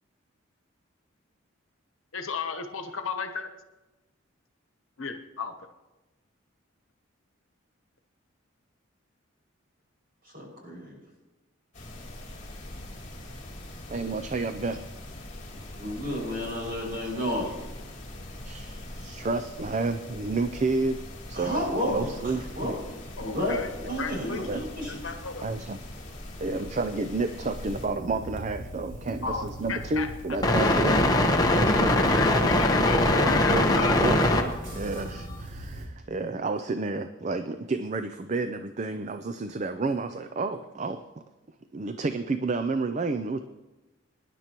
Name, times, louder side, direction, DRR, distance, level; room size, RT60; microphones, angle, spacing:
voice 1, 2.1-3.5 5.0-5.5 18.0-18.1 23.2-23.7 24.0-24.4 24.9-25.5 29.2-30.1 31.9-34.0, left 5 dB, 75° left, 6 dB, 1.1 m, -34 dB
voice 2, 10.2-10.9 15.8-17.5 21.3-25.0, left 1 dB, 50° right, -2 dB, 6.0 m, -31 dB
sound 1, 11.7-27.9, left 1 dB, 35° left, 2.8 m, -42 dB
voice 3, 13.9-14.8 18.4-22.8 24.5-24.6 25.4-25.8 26.4-31.0 31.5-32.3 33.5-41.0 41.7-43.4, right 3 dB, 35° right, 9 dB, 0.4 m, -31 dB
sound 2, 27.5-35.9, right 1 dB, 70° right, 3.0 m, -40 dB
sound 3, 30.4-34.5 35.2-35.3, left 1 dB, 20° left, 1.0 m, -21 dB
24.5 x 10.5 x 3.0 m, 1.1 s
head